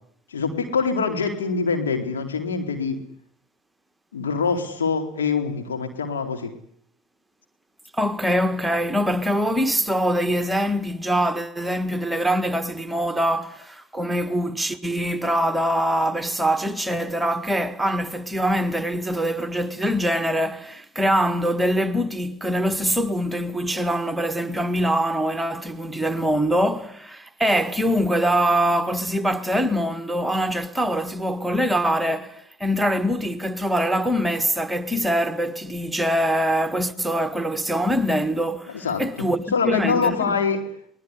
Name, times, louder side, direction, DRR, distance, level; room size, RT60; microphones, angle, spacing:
voice 1, 0.3-3.0 4.1-6.5 38.7-39.0 39.5-40.6, left 5 dB, 80° left, 4.1 m, -24 dB
voice 2, 7.9-40.4, equal, 5° right, 1.6 m, -23 dB
22.5 x 20.0 x 10.0 m
hypercardioid pair, 75°, 0 cm